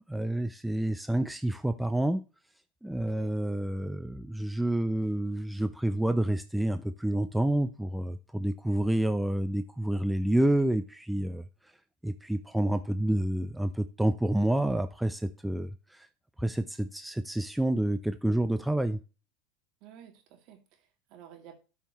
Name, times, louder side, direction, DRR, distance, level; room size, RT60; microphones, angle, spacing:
voice 1, 0.1-2.2 2.8-11.4 12.0-16.1 16.4-19.0, right 1 dB, 5° right, 0.6 m, -28 dB
voice 2, 2.9-3.3 19.8-21.6, right 9 dB, 55° right, 2.8 m, -53 dB
12.5 x 5.8 x 3.1 m
hypercardioid pair, 95°, 0 cm